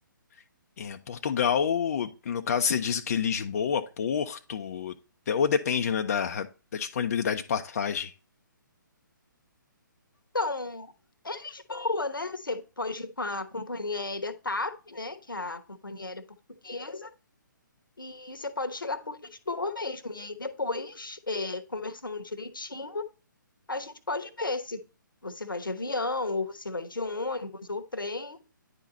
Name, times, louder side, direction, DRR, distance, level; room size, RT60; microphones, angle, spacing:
voice 1, 0.8-4.9 5.3-6.5 6.7-8.1, left 7 dB, 45° left, 0.5 m, -28 dB
voice 2, 10.3-10.9 11.2-16.2 16.6-17.1 18.0-23.0 23.7-24.8 25.2-28.4, left 3 dB, 85° left, 1.0 m, -33 dB
9.9 x 3.9 x 4.2 m
figure-of-eight pair, 135°, 11 cm